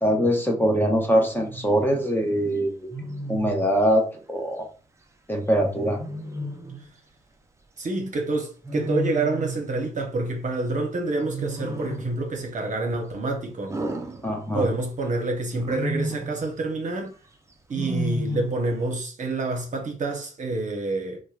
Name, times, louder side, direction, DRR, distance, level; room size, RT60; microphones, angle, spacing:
voice 1, 0.0-2.9 3.3-4.7 5.3-6.0 14.2-14.7, equal, 10° left, 0.8 m, -23 dB
Wild animals, 1.3-1.7 2.9-3.6 6.0-6.9 8.6-9.7 11.2-12.2 13.7-14.8 15.5-16.4 17.7-18.7, right 1 dB, 15° right, 0.5 m, -32 dB
voice 2, 7.8-13.8 14.5-17.1 17.7-21.2, right 2 dB, 45° right, 0.8 m, -27 dB
2.9 x 2.1 x 2.3 m
hypercardioid pair, 50°, 17 cm